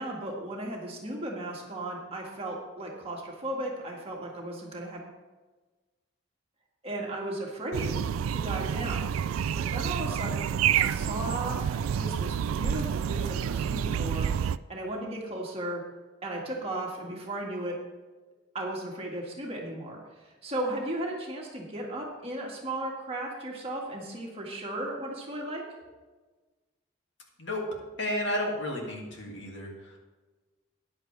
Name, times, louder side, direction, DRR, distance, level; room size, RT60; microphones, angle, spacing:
voice 1, 0.0-5.0 6.8-9.1 9.6-11.6 11.9-15.8 16.2-17.8 18.5-25.7, right 1 dB, 30° right, -2 dB, 1.9 m, -36 dB
sound 1, 7.7-14.6, right 8 dB, 85° right, 0.3 m, -29 dB
voice 2, 28.0-30.0, left 1 dB, 60° left, -1 dB, 2.4 m, -32 dB
14.0 x 10.0 x 3.4 m, 1.3 s
head